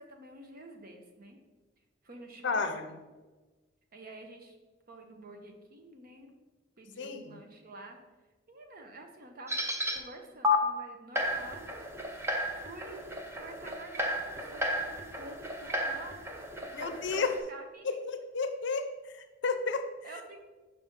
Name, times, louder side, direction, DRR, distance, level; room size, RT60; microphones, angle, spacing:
voice 1, 0.0-1.4 2.0-2.7 3.9-4.6 4.9-6.3 6.8-8.0 8.5-9.6 9.9-11.7 12.5-13.1 13.3-16.1 16.8-18.0 20.0-20.4, right 2 dB, 50° right, 4 dB, 0.9 m, -48 dB
voice 2, 2.4-2.8 7.0-7.4 16.7-17.3 17.8-18.9 19.1-19.9, left 4 dB, 65° left, 8 dB, 0.6 m, -32 dB
sound 1, 9.5-10.0 10.4-10.6 11.2-17.4, left 2 dB, 15° right, 0.6 m, -33 dB
5.6 x 5.4 x 3.7 m, 1.2 s
head